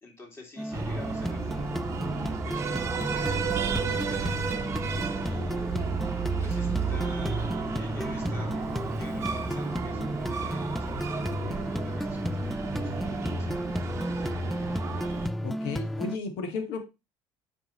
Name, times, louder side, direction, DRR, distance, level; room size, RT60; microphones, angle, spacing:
voice 1, 0.0-5.7 6.4-14.0, left 3 dB, 25° left, 0 dB, 2.7 m, -49 dB
sound 1, 0.6-16.2, left 1 dB, ahead, 0.3 m, -33 dB
Breathing, 0.7-15.3, right 6 dB, 30° right, 0.9 m, -33 dB
voice 2, 15.4-16.9, left 4 dB, 80° left, 6 dB, 1.7 m, -33 dB
8.0 x 5.2 x 3.1 m, 0.25 s
cardioid pair, 140°, 10 cm